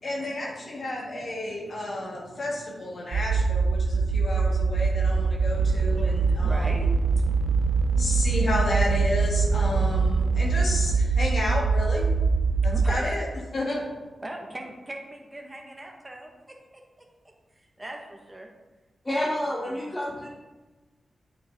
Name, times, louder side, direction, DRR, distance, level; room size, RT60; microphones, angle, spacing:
voice 1, 0.0-6.7 7.3-13.3 13.5-14.0, left 1 dB, 60° left, -2 dB, 1.8 m, -32 dB
sound 1, 3.1-13.0, right 4 dB, 85° right, 0.4 m, -23 dB
sound 2, 5.5-11.0, right 2 dB, 40° right, 0.8 m, -37 dB
voice 2, 6.0-6.9 12.7-13.1 14.2-16.6 17.5-18.5 19.1-19.3 19.7-19.9, right 1 dB, 20° right, 1 dB, 1.6 m, -39 dB
voice 3, 19.0-20.3, left 1 dB, 20° left, -2 dB, 1.2 m, -29 dB
8.6 x 6.0 x 3.8 m, 1.2 s
cardioid pair, 80°, 0 cm